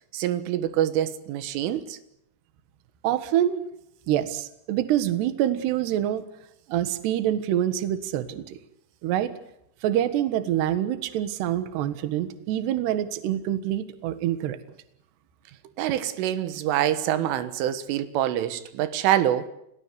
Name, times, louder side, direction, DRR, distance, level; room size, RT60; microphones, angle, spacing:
voice 1, 0.1-2.0 15.8-19.5, right 11 dB, 90° right, 3.9 m, -25 dB
voice 2, 3.0-3.6 4.1-6.2 6.7-8.6 9.0-9.3 9.8-14.6, right 11 dB, 65° right, 3.4 m, -26 dB
30.0 x 17.0 x 9.5 m
omnidirectional pair, 5.5 m